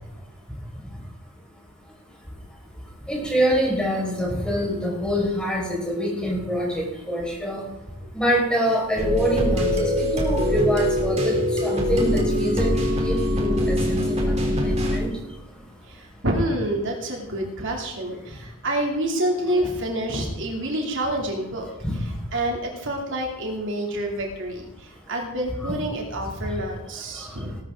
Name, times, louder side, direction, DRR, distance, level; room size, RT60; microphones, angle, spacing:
voice 1, 3.1-7.6 8.1-11.3 11.6-12.7 13.0-14.0 14.4-15.1 25.6-25.7, equal, 5° left, -3 dB, 5.0 m, -25 dB
sound 1, 9.0-15.0, left 1 dB, 30° right, 3.4 m, -23 dB
voice 2, 15.9-21.7 22.3-27.6, right 1 dB, 60° right, 0 dB, 2.8 m, -27 dB
19.0 x 12.5 x 3.8 m, 0.97 s
head